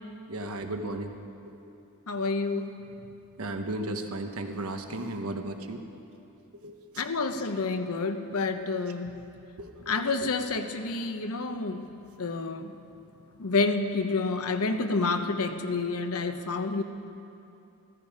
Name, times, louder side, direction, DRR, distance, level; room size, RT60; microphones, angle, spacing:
voice 1, 0.3-1.1 1.4-1.5 3.4-5.9 6.6-7.0 9.6-10.3, right 2 dB, 75° right, 5 dB, 1.1 m, -35 dB
voice 2, 2.1-2.7 7.0-9.2 9.9-11.9 12.2-12.7 13.4-16.8, left 3 dB, 75° left, 8 dB, 0.8 m, -29 dB
15.5 x 14.0 x 4.9 m, 2.7 s
head